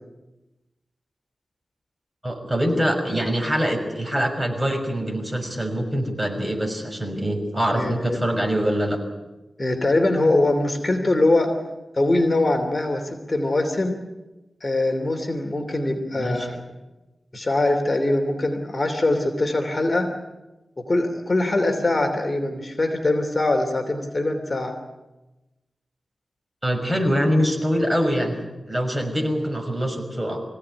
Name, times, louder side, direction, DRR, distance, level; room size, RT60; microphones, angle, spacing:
voice 1, 2.2-9.0 16.1-16.6 26.6-28.4 28.7-30.4, equal, 15° right, 2 dB, 5.9 m, -24 dB
voice 2, 7.7-8.2 9.6-11.5 11.9-13.9 14.6-16.6 17.3-20.1 20.8-24.8, left 2 dB, 35° left, 4 dB, 2.9 m, -22 dB
25.0 x 16.5 x 9.8 m, 1.1 s
wide cardioid pair, 95°, 0 cm